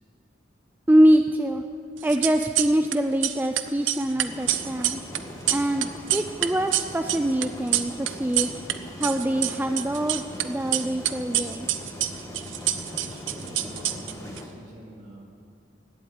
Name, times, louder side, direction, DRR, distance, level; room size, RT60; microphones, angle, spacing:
voice 1, 0.9-1.7 2.0-5.0 5.5-8.5 9.0-11.9, right 1 dB, 10° right, 6 dB, 0.4 m, -24 dB
sound 1, 2.0-3.0 3.2-8.7 9.0-10.4 10.7-14.4, right 13 dB, 75° right, 0.7 m, -26 dB
sound 2, 4.2-14.5, left 1 dB, 15° left, 1.6 m, -40 dB
voice 2, 12.8-15.2, right 1 dB, 40° right, -1 dB, 2.7 m, -45 dB
16.5 x 7.9 x 9.7 m, 2.4 s
head